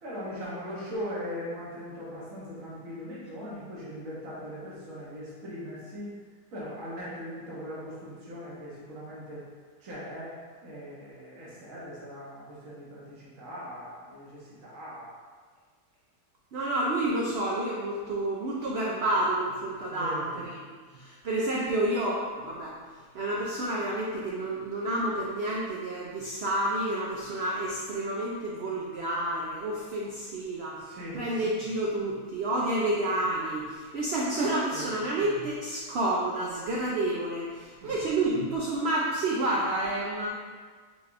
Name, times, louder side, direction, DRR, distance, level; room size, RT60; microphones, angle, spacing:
voice 1, 0.0-6.1 6.5-9.4 9.8-10.3 10.6-15.1 19.9-20.5 30.8-31.2 34.7-34.9 37.8-38.0, equal, 60° right, -7 dB, 1.3 m, -40 dB
voice 2, 16.5-20.5 20.9-22.7 23.1-30.8 31.1-40.3, right 1 dB, 75° right, -4 dB, 0.5 m, -29 dB
4.9 x 3.3 x 2.5 m, 1.5 s
omnidirectional pair, 1.7 m